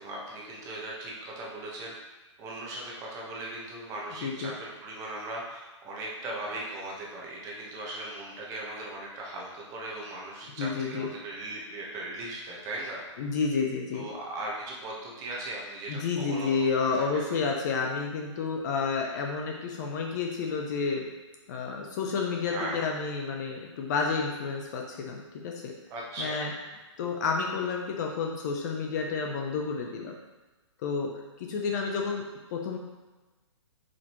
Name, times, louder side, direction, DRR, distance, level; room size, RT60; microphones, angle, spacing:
voice 1, 0.0-1.9 2.4-13.1 13.9-16.9 22.5-22.8 25.9-26.4, right 2 dB, 20° right, -3 dB, 1.2 m, -38 dB
voice 2, 4.2-4.5 10.6-11.1 13.2-14.1 15.9-21.1 21.5-25.7 26.2-26.5 27.0-30.1 30.8-32.2 32.5-32.8, left 5 dB, 35° left, 1 dB, 0.7 m, -30 dB
7.1 x 5.1 x 3.1 m, 1.2 s
hypercardioid pair, 155°, 16 cm